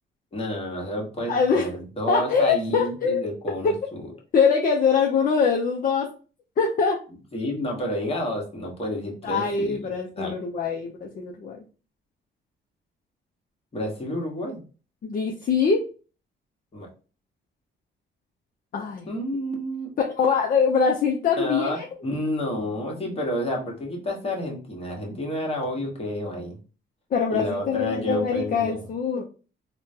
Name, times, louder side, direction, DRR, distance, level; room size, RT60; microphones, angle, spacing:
voice 1, 0.3-4.0 7.3-10.3 13.7-14.6 16.7-16.9 19.1-19.9 21.4-26.6 27.3-28.9, left 1 dB, 30° left, -1 dB, 1.2 m, -30 dB
voice 2, 1.3-1.7 2.1-3.3 3.6-3.8 4.3-6.1 6.6-7.0 9.2-11.6 15.0-15.9 18.7-19.1 20.2-21.8 27.1-29.2, left 5 dB, 45° left, 1 dB, 0.6 m, -23 dB
3.6 x 2.2 x 2.7 m, 0.36 s
cardioid pair, 90°, 20 cm